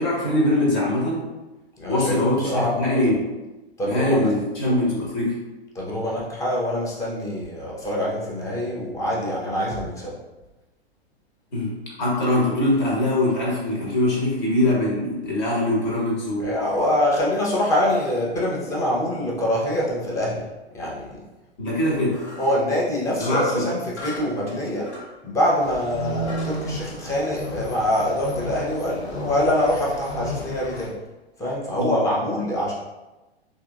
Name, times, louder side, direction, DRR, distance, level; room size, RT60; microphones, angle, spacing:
voice 1, 0.0-1.3 1.9-3.3 3.8-5.4 11.5-16.5 21.6-22.2 23.2-23.7 31.8-31.9, left 1 dB, 45° left, -4 dB, 1.3 m, -22 dB
voice 2, 1.8-2.2 2.4-2.8 3.8-4.3 5.7-10.1 16.4-20.5 20.7-21.2 22.4-24.9 25.2-30.9 31.4-32.7, left 1 dB, 10° left, -4 dB, 0.6 m, -24 dB
sound 1, 22.1-22.6 24.0-25.1 25.7-25.8 26.3-26.6, left 2 dB, 90° left, 1.3 m, -38 dB
sound 2, 25.6-30.9, equal, 70° left, 0.7 m, -33 dB
3.5 x 2.5 x 2.3 m, 1.1 s
figure-of-eight pair, 105°, 33 cm